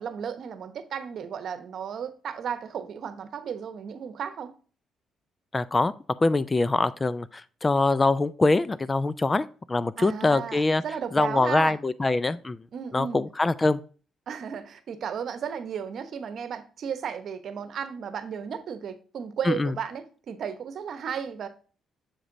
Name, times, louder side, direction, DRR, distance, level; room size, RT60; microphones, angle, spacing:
voice 1, 0.0-4.5 10.0-11.8 12.7-13.2 14.3-21.5, right 7 dB, 60° right, 1.0 m, -34 dB
voice 2, 5.5-5.9 6.2-10.8 11.1-12.6 12.9-13.8 19.5-19.7, left 3 dB, 25° left, 0.4 m, -24 dB
7.3 x 5.0 x 2.6 m
cardioid pair, 90°, 0 cm